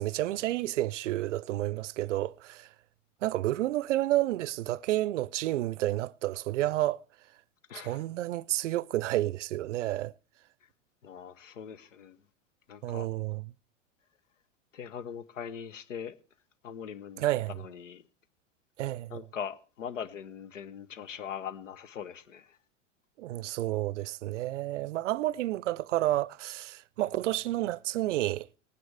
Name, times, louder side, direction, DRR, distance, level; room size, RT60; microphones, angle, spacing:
voice 1, 0.0-2.7 3.2-7.0 7.7-10.1 12.8-13.4 17.2-17.6 18.8-19.2 23.2-28.6, right 15 dB, 75° right, 0.5 m, -30 dB
voice 2, 7.7-8.0 11.0-12.2 12.7-13.1 14.7-16.1 16.6-17.2 17.5-18.0 19.1-22.6, left 8 dB, 85° left, 1.0 m, -41 dB
19.0 x 9.4 x 3.4 m
hypercardioid pair, 100°, 37 cm